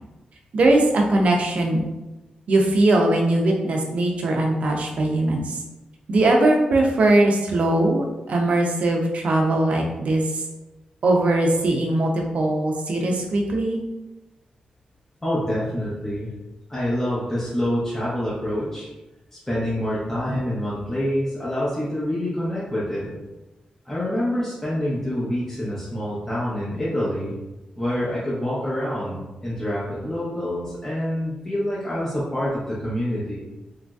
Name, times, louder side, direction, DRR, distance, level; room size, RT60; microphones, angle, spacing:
voice 1, 0.5-1.8 2.5-5.6 6.1-10.5 11.0-13.8, right 2 dB, 60° right, 1 dB, 0.5 m, -20 dB
voice 2, 15.2-16.3 16.7-18.9 19.3-23.2 23.8-27.4 27.8-33.4, equal, 15° left, -8 dB, 0.7 m, -26 dB
3.0 x 2.5 x 2.3 m, 1.0 s
cardioid pair, 95°, 2 cm